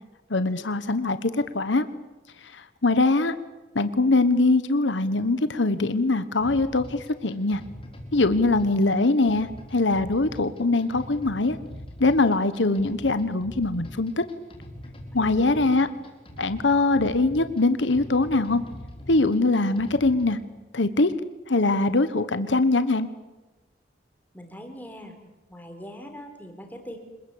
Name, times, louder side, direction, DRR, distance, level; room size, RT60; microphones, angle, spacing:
voice 1, 0.3-1.9 2.4-3.3 3.7-7.6 8.1-11.6 12.0-14.2 15.1-15.9 16.4-18.6 19.1-20.4 20.7-21.1 21.5-23.1, left 2 dB, 75° left, 12 dB, 1.2 m, -22 dB
sound 1, 6.4-20.3, left 1 dB, 30° left, 4.9 m, -42 dB
voice 2, 15.2-15.9 24.3-25.2 25.5-27.0, equal, 10° left, 4 dB, 3.9 m, -42 dB
26.5 x 21.5 x 8.7 m, 1.2 s
head